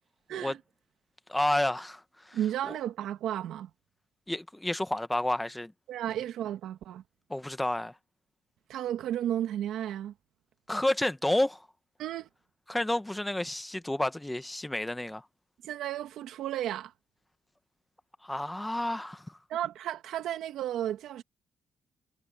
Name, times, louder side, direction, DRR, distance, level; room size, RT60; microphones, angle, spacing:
voice 1, 1.3-2.4 2.7-2.8 4.3-5.7 7.3-7.9 10.7-11.7 12.7-15.2 18.2-19.4, left 1 dB, 10° left, 1.0 m, -30 dB
voice 2, 2.3-3.7 5.9-7.0 8.7-10.1 12.0-12.3 15.6-16.9 19.5-21.2, right 11 dB, 80° right, 2.0 m, -33 dB
cardioid pair, 90°, 0 cm